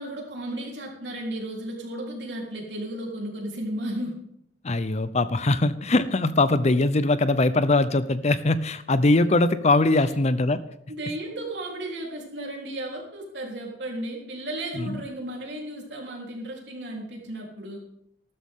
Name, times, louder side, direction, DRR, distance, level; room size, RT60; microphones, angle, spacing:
voice 1, 0.0-4.2 10.0-10.1 10.9-17.8, right 1 dB, 70° right, -1 dB, 3.8 m, -34 dB
voice 2, 4.6-10.6 14.7-15.0, left 2 dB, 40° left, 13 dB, 0.7 m, -21 dB
14.0 x 12.5 x 3.8 m, 0.73 s
head